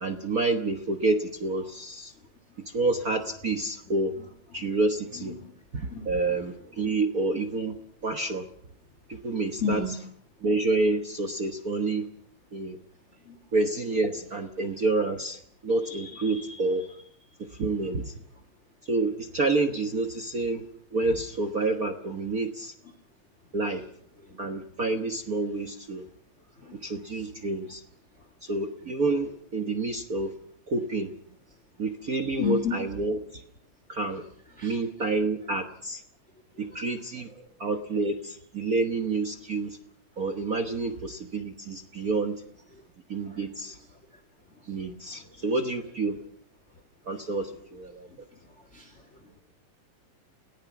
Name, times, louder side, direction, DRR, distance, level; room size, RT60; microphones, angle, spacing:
voice 1, 0.0-2.1 2.7-4.1 4.5-5.3 5.7-7.7 8.0-8.4 9.1-9.8 10.4-12.0 12.5-12.8 13.5-16.9 17.6-18.1 18.9-20.6 20.9-22.7 23.5-23.8 24.4-26.0 26.8-27.8 28.4-30.3 30.7-31.1 31.8-33.4 33.9-34.2 34.6-36.0 36.6-37.3 37.6-39.8 40.2-42.4 43.1-43.8 44.7-46.2 47.1-48.1, right 3 dB, 50° right, 6 dB, 1.1 m, -28 dB
voice 2, 5.2-6.1 6.8-6.9 9.6-9.9 13.3-13.4 24.3-24.4 26.6-26.7 27.1-27.2 32.4-32.7 34.6-34.8 36.7-36.9 43.3-43.4 48.7-48.9, left 7 dB, 25° left, 5 dB, 2.8 m, -32 dB
29.5 x 19.0 x 6.0 m, 0.66 s
omnidirectional pair, 3.4 m